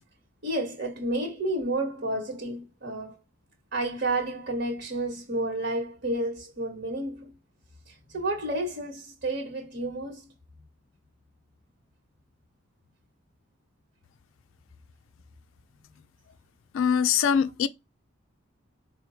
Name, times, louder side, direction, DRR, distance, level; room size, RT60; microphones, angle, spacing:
voice 1, 0.4-3.2 3.7-7.3 7.9-10.3, right 1 dB, 55° right, 1.3 m, -31 dB
voice 2, 16.7-17.7, left 7 dB, 75° left, 0.3 m, -23 dB
4.9 x 2.2 x 4.2 m
head